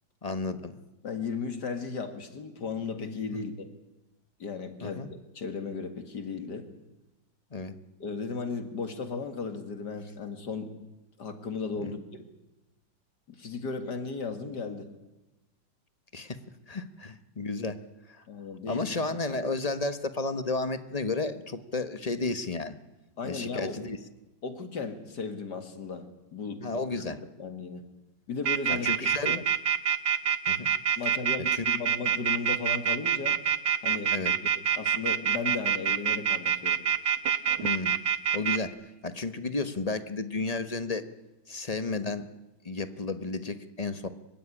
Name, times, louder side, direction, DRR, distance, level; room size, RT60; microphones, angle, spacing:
voice 1, 0.2-0.8 3.3-3.5 4.8-5.1 7.5-7.7 11.8-12.0 16.1-16.4 16.7-17.8 18.1-18.2 18.7-22.7 23.2-24.0 26.6-27.2 28.7-29.5 30.5-30.7 31.5-31.6 34.1-34.3 37.6-38.0 38.3-41.1 41.5-42.3 42.6-44.1, left 3 dB, 25° left, 10 dB, 1.0 m, -32 dB
voice 2, 1.0-3.7 4.4-6.7 8.0-10.7 11.2-12.2 13.3-14.9 18.3-18.8 23.2-23.8 24.4-26.1 26.3-27.0 27.4-27.8 28.3-29.3 31.0-33.4 33.8-34.1 34.4-36.8, left 4 dB, 60° left, 8 dB, 2.6 m, -35 dB
sound 1, 28.4-38.6, right 8 dB, 85° right, 1.8 m, -25 dB
26.0 x 15.5 x 10.0 m, 1.0 s
omnidirectional pair, 2.1 m